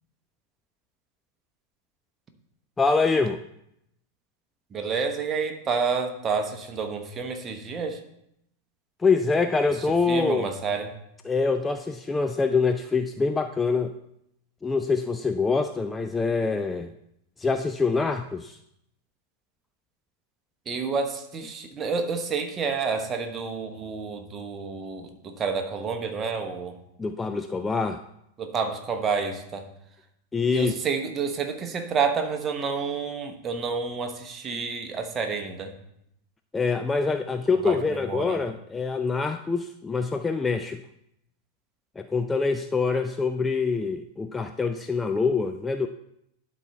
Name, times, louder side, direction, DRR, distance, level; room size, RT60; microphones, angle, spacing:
voice 1, 2.8-3.4 9.0-10.5 11.3-13.9 14.6-16.9 17.4-18.6 27.0-28.0 30.3-30.7 34.5-34.6 36.5-40.8 42.0-45.9, left 4 dB, 15° left, 8 dB, 0.3 m, -25 dB
voice 2, 4.7-8.0 9.9-10.9 20.7-26.8 28.4-29.7 30.5-35.7 37.6-38.4, right 5 dB, 25° right, 5 dB, 1.0 m, -29 dB
11.5 x 4.3 x 3.5 m, 0.78 s
figure-of-eight pair, 90°, 0 cm